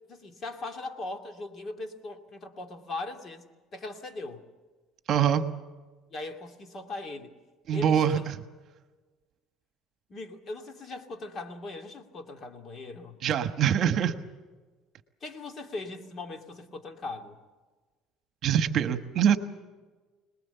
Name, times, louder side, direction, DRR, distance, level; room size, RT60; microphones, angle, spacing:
voice 1, 0.1-3.5 3.7-4.4 6.1-7.3 7.7-8.2 10.1-13.2 15.2-17.4, left 2 dB, 35° left, 6 dB, 2.6 m, -39 dB
voice 2, 5.1-5.4 7.7-8.4 13.2-14.1 18.4-19.4, right 9 dB, 50° right, 10 dB, 1.3 m, -24 dB
26.0 x 20.5 x 7.0 m, 1.3 s
cardioid pair, 130°, 0 cm